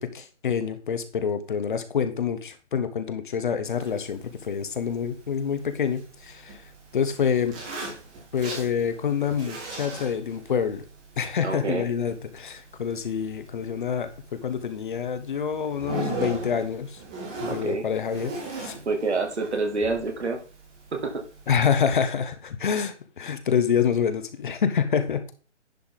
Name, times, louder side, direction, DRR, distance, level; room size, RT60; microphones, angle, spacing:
voice 1, 0.0-6.6 6.9-7.5 8.3-10.8 11.2-17.0 17.4-18.7 21.5-25.4, left 7 dB, 45° left, 10 dB, 1.1 m, -27 dB
Zipper (clothing), 3.6-21.6, right 2 dB, 5° right, 0.5 m, -40 dB
voice 2, 11.4-11.8 17.4-17.9 18.9-20.4 20.9-21.1, right 3 dB, 65° right, 4 dB, 2.4 m, -27 dB
10.5 x 5.5 x 3.9 m, 0.37 s
figure-of-eight pair, 140°, 36 cm